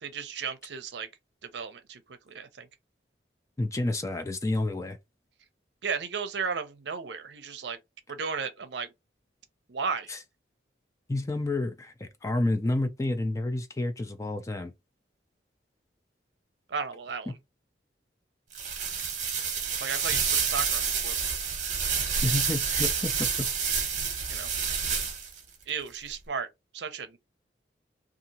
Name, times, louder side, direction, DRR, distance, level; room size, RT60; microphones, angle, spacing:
voice 1, 0.0-1.1 1.4-2.0 2.3-2.7 5.8-7.8 8.1-8.9 9.7-10.1 16.7-17.3 19.8-21.3 24.3-24.5 25.7-26.5 26.7-27.2, right 5 dB, 70° right, 0.6 m, -34 dB
voice 2, 3.6-5.0 10.1-10.2 11.1-14.7 17.3-17.4 22.2-23.5, left 2 dB, 15° left, 0.4 m, -30 dB
sound 1, 18.5-25.4, right 6 dB, 40° right, 0.9 m, -29 dB
2.7 x 2.4 x 2.8 m
head